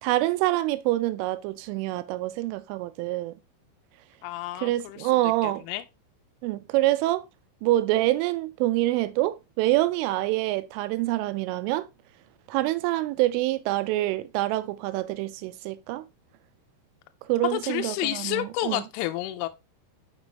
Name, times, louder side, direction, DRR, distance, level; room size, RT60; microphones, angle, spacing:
voice 1, 0.0-3.3 4.6-5.6 6.4-7.2 7.6-11.9 12.5-16.1 17.3-18.8, right 17 dB, 85° right, 3.1 m, -26 dB
voice 2, 4.2-5.1 5.4-5.8 17.5-19.5, left 15 dB, 85° left, 3.0 m, -30 dB
6.3 x 6.1 x 2.9 m
omnidirectional pair, 5.6 m